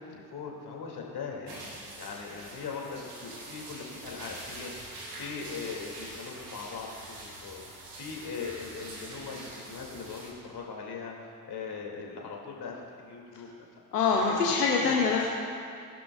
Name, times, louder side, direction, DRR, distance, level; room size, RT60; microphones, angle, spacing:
voice 1, 0.0-13.5 14.1-14.2 14.8-15.0, left 5 dB, 55° left, -1 dB, 2.8 m, -40 dB
sound 1, 1.5-10.3, right 1 dB, 85° right, 1.8 m, -44 dB
voice 2, 13.9-15.3, left 5 dB, 90° left, -1 dB, 0.8 m, -24 dB
20.0 x 11.5 x 2.5 m, 2.3 s
figure-of-eight pair, 40°, 46 cm